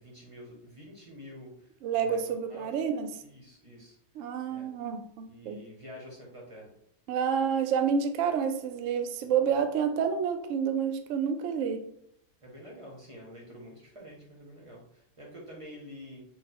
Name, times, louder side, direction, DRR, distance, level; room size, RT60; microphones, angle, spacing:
voice 1, 0.0-2.8 3.2-4.0 4.5-4.7 5.3-6.7 12.4-16.2, equal, 25° right, -3 dB, 0.7 m, -48 dB
voice 2, 1.8-3.1 4.2-5.6 7.1-11.8, right 7 dB, 70° right, 7 dB, 0.7 m, -29 dB
4.4 x 2.2 x 4.2 m, 0.72 s
omnidirectional pair, 1.8 m